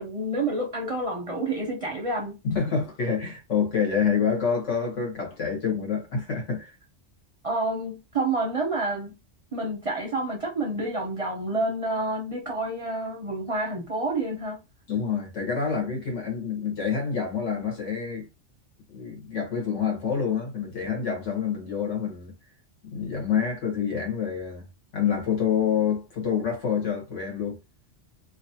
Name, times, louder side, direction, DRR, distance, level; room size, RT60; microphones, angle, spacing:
voice 1, 0.0-2.4 7.4-9.2 9.5-14.6, right 2 dB, 40° right, 0.5 m, -29 dB
voice 2, 2.4-6.7 14.9-18.3 18.9-22.3 22.8-24.6 24.9-27.6, left 6 dB, 85° left, 1.6 m, -27 dB
2.9 x 2.5 x 2.7 m
omnidirectional pair, 1.2 m